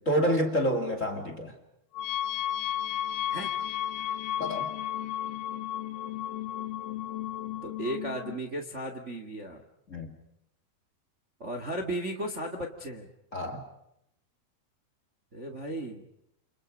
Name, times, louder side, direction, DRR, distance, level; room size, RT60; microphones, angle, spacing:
voice 1, 0.1-1.5 4.4-4.7 9.9-10.1 13.3-13.6, equal, 25° left, 7 dB, 1.8 m, -28 dB
sound 1, 1.9-8.4, left 12 dB, 70° left, 2.7 m, -33 dB
voice 2, 7.6-9.6 11.4-13.1 15.3-16.0, right 1 dB, 50° right, 4 dB, 0.8 m, -35 dB
29.5 x 28.0 x 5.3 m, 0.79 s
omnidirectional pair, 5.1 m